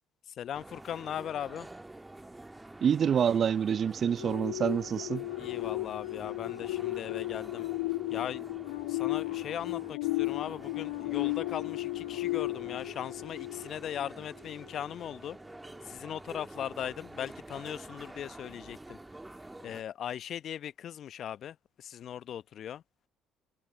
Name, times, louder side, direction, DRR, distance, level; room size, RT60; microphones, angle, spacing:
voice 1, 0.3-1.7 5.4-7.7 8.1-8.5 8.9-15.4 15.8-19.0 19.6-22.8, left 10 dB, 55° left, 0.8 m, -39 dB
sound 1, 0.5-19.8, right 2 dB, 15° right, 1.6 m, -48 dB
voice 2, 2.8-5.2, right 8 dB, 50° right, 0.7 m, -27 dB
sound 2, 4.2-14.1 14.5-14.7, left 23 dB, 80° left, 1.1 m, -35 dB
hypercardioid pair, 55°, 0 cm